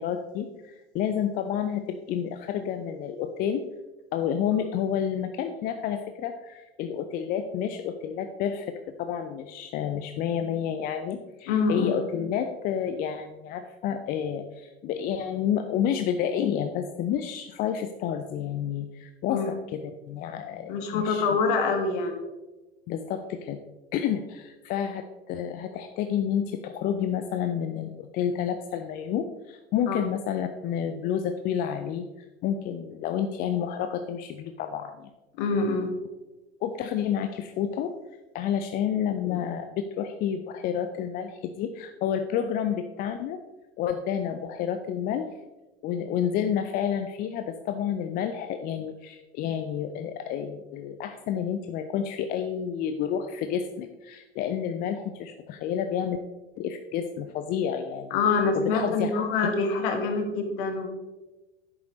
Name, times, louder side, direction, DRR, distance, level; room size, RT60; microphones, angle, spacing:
voice 1, 0.0-3.6 4.1-21.4 22.9-23.6 23.9-32.0 32.4-35.1 36.6-37.9 38.3-43.4 43.8-45.3 45.8-56.2 56.6-58.2 58.5-59.1, left 8 dB, 30° left, 8 dB, 0.5 m, -30 dB
voice 2, 11.5-11.9 19.3-19.5 20.7-22.2 29.9-30.0 35.4-35.9 58.1-60.9, left 4 dB, 50° left, 5 dB, 1.7 m, -25 dB
10.5 x 8.2 x 3.0 m, 1.1 s
figure-of-eight pair, 85°, 33 cm